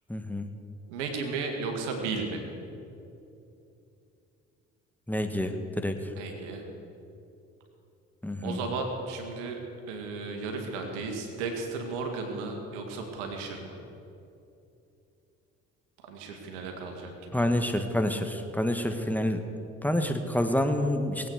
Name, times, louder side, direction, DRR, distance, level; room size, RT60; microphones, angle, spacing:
voice 1, 0.1-0.5 5.1-5.9 8.2-8.6 17.3-19.4 19.8-21.3, left 1 dB, 5° left, 6 dB, 1.6 m, -28 dB
voice 2, 0.9-2.4 6.2-6.6 8.4-9.6 9.9-13.8 16.0-17.4, right 4 dB, 85° right, 3 dB, 2.0 m, -34 dB
20.5 x 8.8 x 6.6 m, 2.7 s
hypercardioid pair, 50°, 35 cm